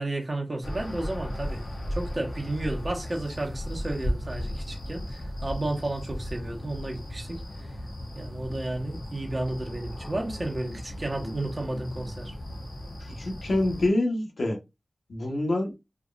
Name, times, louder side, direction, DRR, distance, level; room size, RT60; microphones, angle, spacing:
voice 1, 0.0-1.6 1.9-7.7 8.1-12.3, right 2 dB, 40° right, 1.5 m, -32 dB
sound 1, 0.6-13.9, equal, 65° left, 1.4 m, -36 dB
voice 2, 13.1-14.6 15.1-15.7, left 1 dB, 90° left, 1.5 m, -26 dB
4.8 x 3.3 x 2.6 m
wide cardioid pair, 90°, 0 cm